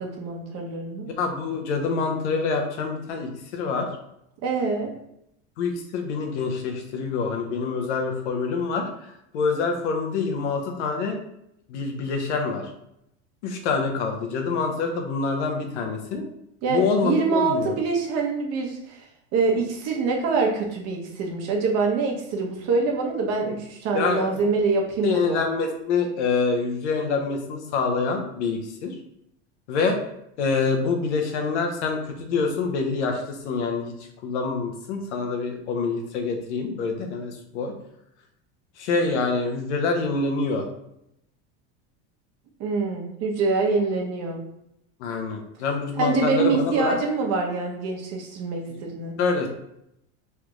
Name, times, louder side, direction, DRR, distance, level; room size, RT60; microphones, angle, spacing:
voice 1, 0.0-1.1 4.4-4.9 16.6-19.0 19.3-25.4 42.6-44.4 46.0-49.2, right 4 dB, 50° right, 0 dB, 0.9 m, -25 dB
voice 2, 1.0-3.9 5.6-11.2 11.7-12.7 13.4-16.2 16.7-17.8 23.9-24.4 25.0-28.9 29.7-30.0 30.4-33.9 34.2-37.7 38.8-40.7 45.0-47.0 49.2-49.5, left 4 dB, 90° left, 4 dB, 0.8 m, -26 dB
3.3 x 2.4 x 3.1 m, 0.80 s
supercardioid pair, 125°, 34 cm